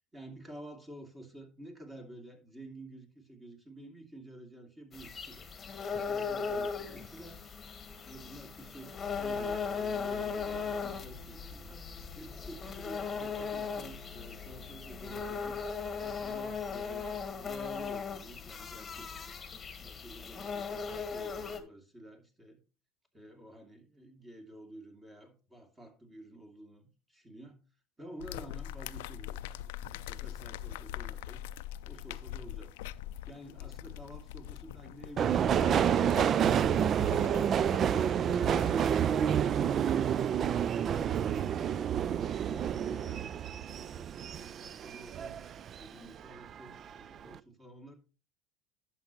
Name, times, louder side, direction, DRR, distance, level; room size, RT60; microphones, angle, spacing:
voice 1, 0.1-5.5 6.0-7.4 8.0-11.8 12.1-15.6 16.0-19.2 19.8-22.6 23.1-27.6 28.0-31.4 31.9-32.7 33.3-36.5 42.2-45.4 45.8-47.9, right 1 dB, 15° right, 4 dB, 2.6 m, -50 dB
sound 1, 4.9-21.6, left 5 dB, 25° left, 1.4 m, -38 dB
sound 2, 28.2-39.4, left 12 dB, 80° left, 0.4 m, -43 dB
Subway metro underground, 35.2-45.9 46.2-47.0 47.2-47.4, right 9 dB, 40° right, 0.3 m, -29 dB
11.5 x 6.7 x 3.0 m, 0.34 s
supercardioid pair, 95°, 0 cm